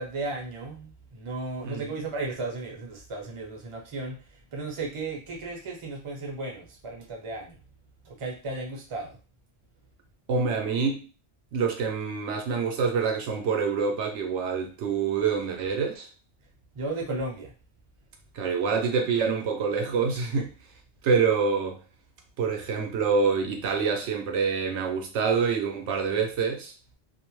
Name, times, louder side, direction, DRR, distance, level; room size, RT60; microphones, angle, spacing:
voice 1, 0.0-7.6 8.0-9.2 16.7-17.5, right 2 dB, 35° right, 0 dB, 0.6 m, -35 dB
voice 2, 10.3-11.0 11.5-16.1 18.3-20.5 21.0-21.8 22.4-26.7, right 5 dB, 75° right, 3 dB, 0.9 m, -26 dB
2.5 x 2.0 x 3.0 m, 0.33 s
omnidirectional pair, 1.2 m